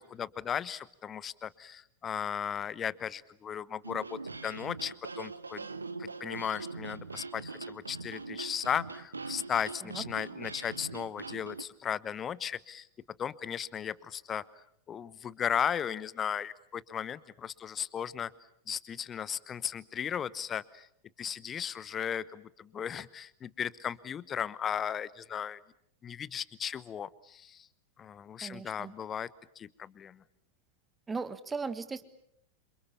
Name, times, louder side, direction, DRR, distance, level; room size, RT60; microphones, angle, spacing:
voice 1, 0.0-5.7 6.0-12.9 13.2-14.4 14.9-18.3 18.7-20.9 21.2-25.6 26.0-27.7 28.0-29.3 29.6-30.2, left 8 dB, 25° left, 19 dB, 1.0 m, -36 dB
sound 1, 3.8-11.6, right 3 dB, 80° right, 1.0 m, -42 dB
voice 2, 28.4-28.9 31.1-32.0, right 4 dB, 15° right, 13 dB, 1.5 m, -37 dB
28.5 x 26.5 x 7.1 m, 0.73 s
figure-of-eight pair, 90°, 0 cm